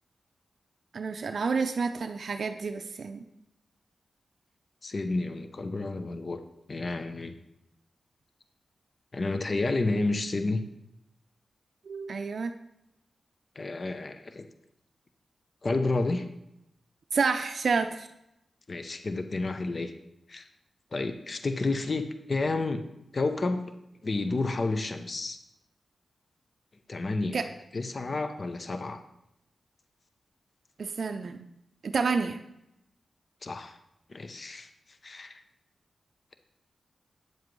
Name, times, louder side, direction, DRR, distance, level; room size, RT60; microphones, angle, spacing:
voice 1, 0.9-3.2 11.9-12.5 17.1-18.1 27.3-27.4 30.8-31.5 31.8-32.4, right 4 dB, 65° right, 7 dB, 0.4 m, -29 dB
voice 2, 4.8-6.4 6.7-7.3 9.1-10.6 13.6-14.4 15.6-16.3 18.7-19.9 20.3-20.5 20.9-22.8 23.1-23.6 24.0-25.4 26.9-27.4 27.7-29.0 33.4-33.8 34.1-34.7 35.0-35.4, left 3 dB, 45° left, 8 dB, 0.6 m, -30 dB
9.1 x 7.3 x 3.1 m, 0.84 s
cardioid pair, 75°, 0 cm